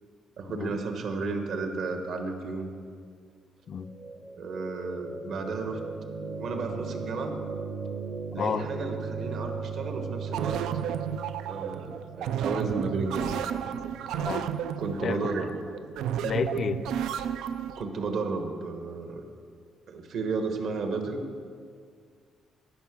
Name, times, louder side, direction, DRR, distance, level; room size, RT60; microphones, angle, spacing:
voice 1, 0.4-2.7 4.4-5.8 6.4-7.3 8.3-10.6 11.4-13.4 14.8-15.5 17.8-19.3 19.9-21.2, right 4 dB, 55° right, 5 dB, 1.2 m, -33 dB
sound 1, 3.8-15.9, right 5 dB, 20° right, 0.7 m, -38 dB
voice 2, 8.4-8.7 14.2-14.5 15.0-15.2 16.2-16.8, left 6 dB, 40° left, 12 dB, 0.4 m, -30 dB
sound 2, 10.3-17.8, right 9 dB, 85° right, 0.4 m, -32 dB
14.5 x 5.8 x 6.0 m, 2.1 s
cardioid pair, 165°, 0 cm